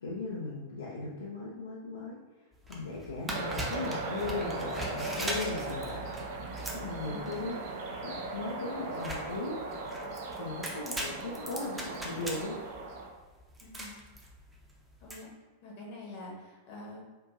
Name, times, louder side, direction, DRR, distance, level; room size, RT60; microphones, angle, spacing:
voice 1, 0.0-2.2 2.7-6.1 6.7-7.7 8.0-9.6 10.4-12.6, left 3 dB, 70° left, -5 dB, 0.5 m, -38 dB
sound 1, 2.5-15.2, right 1 dB, 10° right, 0.6 m, -41 dB
sound 2, 3.3-13.1, right 3 dB, 50° right, 0.5 m, -38 dB
voice 2, 6.9-7.3 13.6-14.0 15.0-15.3 15.6-17.0, left 2 dB, 50° left, -3 dB, 1.1 m, -46 dB
4.6 x 2.5 x 2.5 m, 1.3 s
figure-of-eight pair, 90°, 0 cm